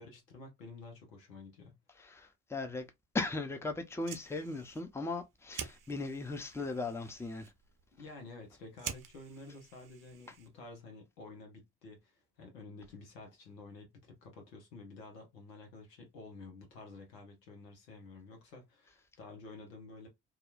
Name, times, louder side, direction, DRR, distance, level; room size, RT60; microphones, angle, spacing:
voice 1, 0.0-1.8 7.9-20.1, left 3 dB, 90° left, 0.9 m, -51 dB
voice 2, 2.0-2.9 3.1-7.5, left 3 dB, 5° left, 0.6 m, -38 dB
Fire, 3.8-10.8, right 8 dB, 40° right, 0.7 m, -49 dB
2.8 x 2.3 x 2.4 m
hypercardioid pair, 45°, 48 cm